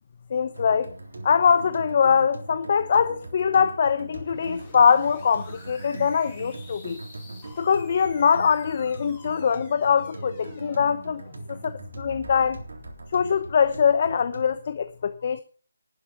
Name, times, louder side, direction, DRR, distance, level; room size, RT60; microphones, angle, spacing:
voice 1, 0.3-0.9 1.2-7.0 7.6-11.2 11.5-12.6 13.1-15.4, left 6 dB, 40° left, 0.9 m, -22 dB
sound 1, 0.5-14.6, right 2 dB, 70° right, 3.6 m, -41 dB
sound 2, 4.1-13.8, left 3 dB, 15° left, 6.4 m, -47 dB
12.0 x 9.2 x 6.0 m
figure-of-eight pair, 155°, 0 cm